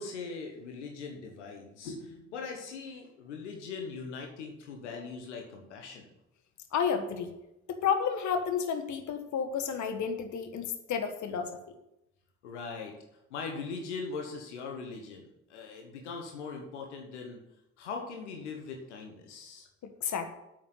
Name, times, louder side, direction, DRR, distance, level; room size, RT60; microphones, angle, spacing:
voice 1, 0.0-6.1 12.4-12.9 13.3-17.4 17.8-19.7, left 4 dB, 80° left, 2 dB, 1.3 m, -40 dB
voice 2, 6.7-7.3 7.7-11.8 19.8-20.3, left 7 dB, 55° left, 7 dB, 1.5 m, -31 dB
8.7 x 6.5 x 8.2 m, 0.88 s
hypercardioid pair, 45°, 34 cm